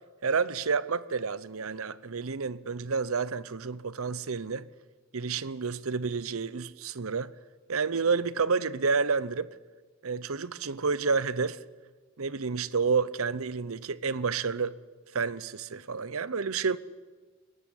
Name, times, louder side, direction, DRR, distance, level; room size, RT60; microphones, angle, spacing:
voice 1, 0.2-4.7 5.1-7.3 7.7-9.5 10.0-11.6 12.2-14.8 15.1-16.8, right 5 dB, 85° right, 0.8 m, -29 dB
21.5 x 18.0 x 10.0 m
head